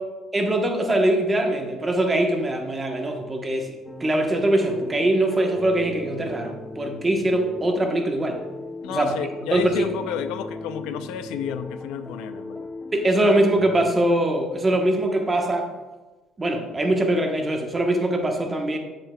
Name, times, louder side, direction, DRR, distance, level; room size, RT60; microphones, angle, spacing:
voice 1, 0.3-3.7 4.0-8.4 8.9-9.1 9.5-9.9 12.9-15.7 16.4-18.8, right 1 dB, 20° right, 3 dB, 1.0 m, -22 dB
sound 1, 3.9-13.9, left 2 dB, 10° left, 0.4 m, -38 dB
voice 2, 8.8-12.7, left 8 dB, 85° left, 10 dB, 0.4 m, -31 dB
7.6 x 7.4 x 2.2 m, 1.2 s
cardioid pair, 115°, 0 cm